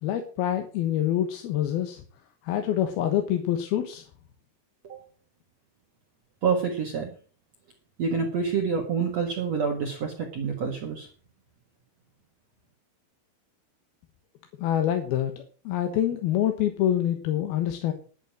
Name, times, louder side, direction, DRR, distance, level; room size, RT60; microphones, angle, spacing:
voice 1, 0.0-2.0 2.4-4.0 14.6-15.3 15.7-17.9, left 11 dB, 75° left, 6 dB, 3.0 m, -26 dB
voice 2, 6.4-7.1 8.0-11.1, right 5 dB, 50° right, 2 dB, 2.2 m, -27 dB
11.0 x 8.9 x 7.5 m, 0.42 s
omnidirectional pair, 4.7 m